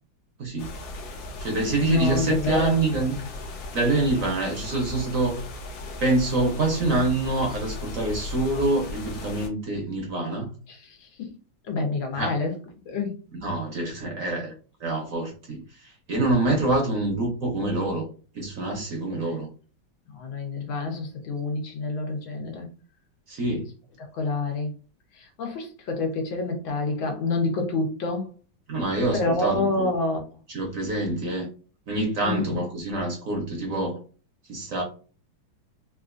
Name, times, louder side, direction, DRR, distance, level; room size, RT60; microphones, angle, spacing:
voice 1, 0.4-0.7 1.4-3.2 3.7-5.4 6.0-10.5 12.1-12.3 13.4-14.5 14.8-18.1 18.3-19.5 23.3-23.7 28.7-29.9 30.5-31.5 31.9-34.0 34.5-34.8, right 2 dB, 60° right, 0.9 m, -26 dB
sound 1, 0.6-9.5, left 1 dB, 65° left, 1.1 m, -37 dB
voice 2, 1.8-2.8 10.7-11.3 11.7-12.5 12.9-13.2 19.2-19.3 20.1-22.7 24.1-24.7 25.1-28.3 29.1-30.2 32.2-32.4, left 3 dB, 90° left, 1.7 m, -28 dB
3.7 x 2.4 x 2.5 m
omnidirectional pair, 2.1 m